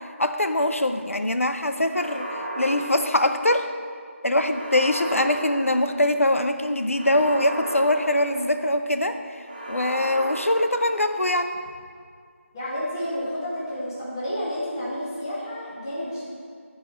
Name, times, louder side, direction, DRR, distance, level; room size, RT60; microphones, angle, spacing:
voice 1, 0.2-3.6 4.2-9.2 9.7-11.6, left 1 dB, 75° left, 7 dB, 0.7 m, -23 dB
sound 1, 1.9-3.7 4.4-6.2 6.9-8.8 9.4-11.3, right 1 dB, 35° right, 1.8 m, -35 dB
voice 2, 12.5-16.2, equal, 15° left, -9 dB, 1.5 m, -30 dB
14.5 x 4.8 x 4.4 m, 2.1 s
figure-of-eight pair, 165°, 7 cm